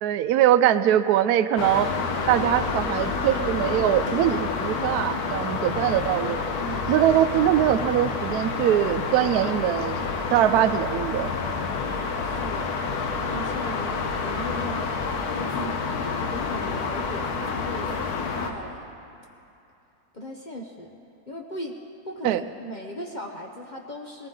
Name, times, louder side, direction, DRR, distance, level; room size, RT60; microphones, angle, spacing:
voice 1, 0.0-1.9 2.3-6.4 6.9-10.0 10.3-11.3 22.2-22.4, right 11 dB, 75° right, 10 dB, 1.1 m, -22 dB
sound 1, 1.6-18.5, left 4 dB, 70° left, 1.5 m, -28 dB
voice 2, 6.6-6.9 12.2-12.7 13.3-14.9 15.3-15.9 16.2-18.8 20.1-21.0 21.3-21.8 22.1-24.3, equal, 35° left, 1 dB, 0.9 m, -37 dB
20.5 x 19.0 x 3.8 m, 2.6 s
omnidirectional pair, 1.7 m